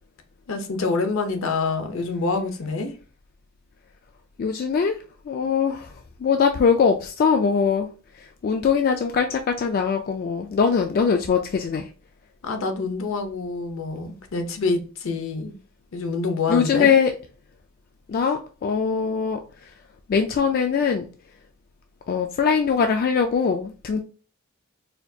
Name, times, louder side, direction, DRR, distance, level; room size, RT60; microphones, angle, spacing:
voice 1, 0.5-2.9 12.4-15.5 15.9-16.9, left 3 dB, 70° left, 0.7 m, -26 dB
voice 2, 4.4-5.0 5.3-5.9 6.2-7.9 8.4-11.9 16.5-17.1 18.1-19.4 20.1-21.0 22.1-24.0, left 6 dB, 45° left, 0.3 m, -21 dB
4.2 x 2.3 x 2.7 m
head